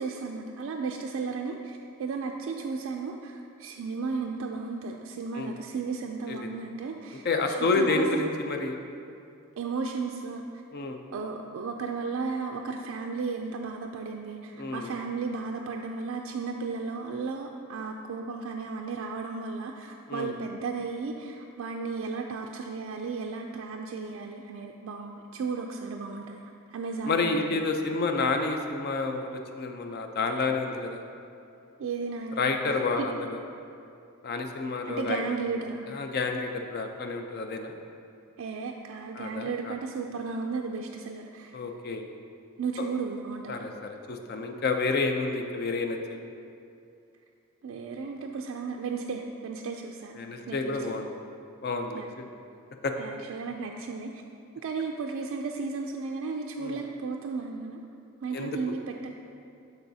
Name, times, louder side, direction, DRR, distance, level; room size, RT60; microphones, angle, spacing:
voice 1, 0.0-8.3 9.6-10.4 11.1-26.4 26.7-27.6 31.8-33.1 34.9-35.9 38.4-41.6 42.6-43.7 47.6-50.2 50.5-51.0 51.9-52.1 53.0-54.2 54.6-57.8 58.2-59.1, right 4 dB, 65° right, 2 dB, 0.3 m, -34 dB
voice 2, 7.2-8.7 10.7-11.0 14.6-14.9 20.1-20.3 27.0-29.3 29.5-31.0 32.4-33.4 34.2-35.2 35.9-37.7 39.2-39.8 41.5-42.0 42.8-42.9 43.5-46.2 50.2-51.1 51.6-52.0 52.8-52.9 56.6-56.8 58.3-58.6, left 3 dB, 50° left, 5 dB, 0.5 m, -29 dB
11.5 x 4.0 x 2.7 m, 2.6 s
head